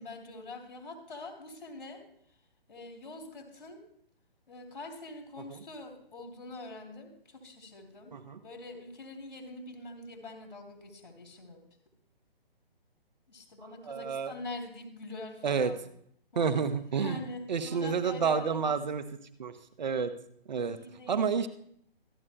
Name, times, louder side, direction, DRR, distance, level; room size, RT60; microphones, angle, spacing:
voice 1, 0.0-2.0 2.7-3.8 4.5-8.1 8.4-11.6 13.3-15.8 16.3-16.6 16.9-18.8 20.5-21.3, left 2 dB, 65° left, 4 dB, 3.0 m, -44 dB
voice 2, 13.8-14.3 15.4-15.7 16.3-17.2 17.5-19.0 19.4-19.5 19.8-20.1 20.5-20.8 21.1-21.5, right 6 dB, 50° right, 10 dB, 0.9 m, -29 dB
25.5 x 9.5 x 2.2 m, 0.68 s
figure-of-eight pair, 135°, 30 cm